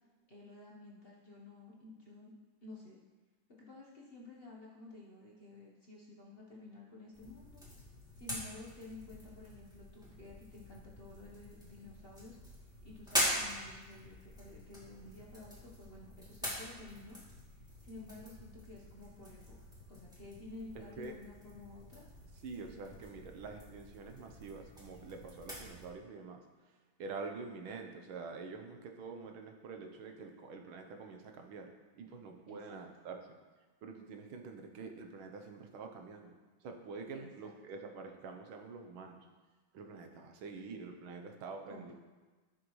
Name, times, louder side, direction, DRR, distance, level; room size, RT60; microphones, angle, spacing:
voice 1, 0.3-2.3 2.6-3.0 3.6-7.6 8.2-12.4 12.6-17.2 17.8-19.6 19.9-22.1 32.5-32.8 37.1-37.5 41.7-41.9, left 2 dB, 35° left, -4 dB, 1.1 m, -52 dB
sound 1, 7.1-25.9, equal, ahead, 2.4 m, -43 dB
voice 2, 22.4-26.4 26.7-33.4 33.8-36.3 36.6-39.2 39.7-41.9, right 4 dB, 80° right, 4 dB, 1.7 m, -46 dB
14.5 x 6.3 x 3.1 m, 1.3 s
omnidirectional pair, 2.2 m